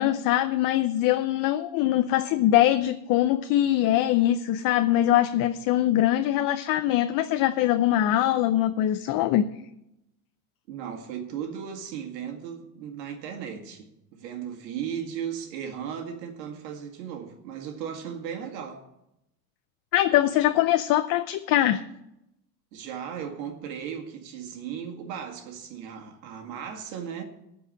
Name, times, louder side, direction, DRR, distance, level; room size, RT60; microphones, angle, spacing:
voice 1, 0.0-9.5 19.9-21.8, left 13 dB, 45° left, 0.6 m, -22 dB
voice 2, 10.7-18.8 22.7-27.2, right 8 dB, 90° right, 2.0 m, -36 dB
14.0 x 4.8 x 8.3 m
supercardioid pair, 135°, 49 cm